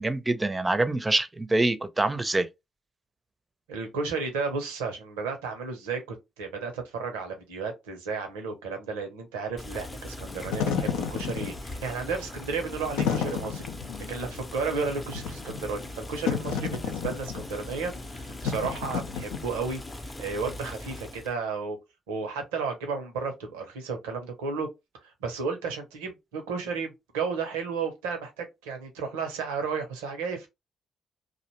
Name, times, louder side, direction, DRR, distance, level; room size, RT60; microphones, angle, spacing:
voice 1, 0.0-2.5, right 2 dB, 25° right, 0.5 m, -25 dB
voice 2, 3.7-13.6 14.1-21.8 22.1-24.7 25.0-30.5, right 4 dB, 85° right, 0.6 m, -33 dB
Boiling, 9.6-21.3, left 1 dB, 25° left, 0.6 m, -40 dB
Wind / Fire, 10.3-19.8, left 7 dB, 80° left, 0.4 m, -32 dB
2.5 x 2.1 x 2.9 m
hypercardioid pair, 45°, 0 cm